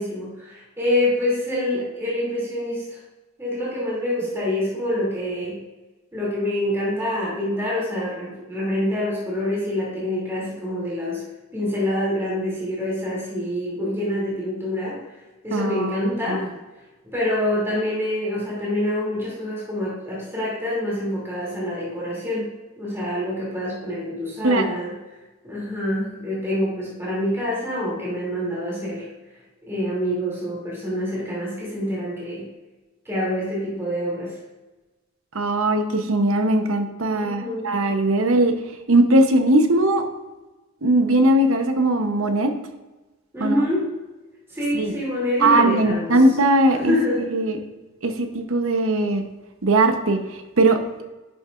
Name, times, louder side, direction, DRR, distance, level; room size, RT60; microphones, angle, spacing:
voice 1, 0.0-3.0 3.4-5.6 6.1-11.2 11.5-15.0 15.4-16.5 17.1-24.9 25.4-29.1 29.6-32.5 33.0-34.3 37.2-37.8 43.3-43.9 44.5-46.2 46.7-47.3, left 1 dB, 10° right, -6 dB, 2.7 m, -26 dB
voice 2, 15.5-16.0 16.2-16.5 24.4-24.6 35.3-38.5 38.9-40.0 40.8-42.5 43.4-43.6 44.7-44.9 45.4-47.0 47.3-47.6 48.0-49.2 49.6-50.2 50.6-51.0, right 1 dB, 70° right, 6 dB, 0.9 m, -19 dB
10.5 x 6.6 x 2.5 m, 1.1 s
head